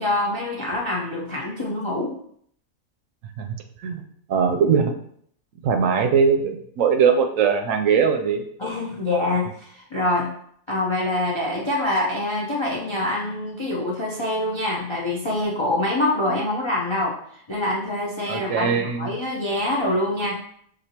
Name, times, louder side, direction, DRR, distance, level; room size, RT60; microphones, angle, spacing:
voice 1, 0.0-2.1 8.6-10.3 10.7-17.1 17.5-20.4, left 1 dB, 45° left, -3 dB, 0.3 m, -25 dB
voice 2, 4.3-4.9 5.6-8.4 18.3-19.1, right 6 dB, 75° right, 5 dB, 0.9 m, -20 dB
6.2 x 2.6 x 2.8 m, 0.66 s
omnidirectional pair, 1.4 m